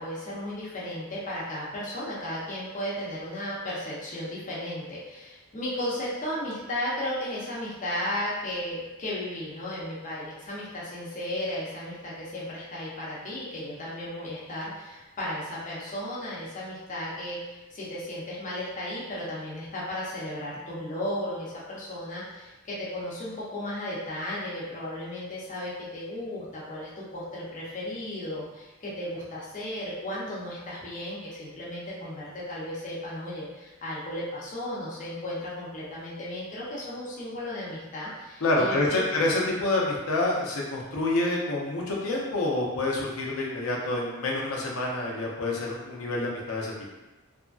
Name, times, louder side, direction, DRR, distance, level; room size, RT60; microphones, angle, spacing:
voice 1, 0.0-39.1, left 1 dB, 40° left, -7 dB, 0.6 m, -35 dB
voice 2, 38.4-46.7, left 2 dB, 75° left, -2 dB, 0.6 m, -27 dB
2.7 x 2.5 x 2.3 m, 1.1 s
head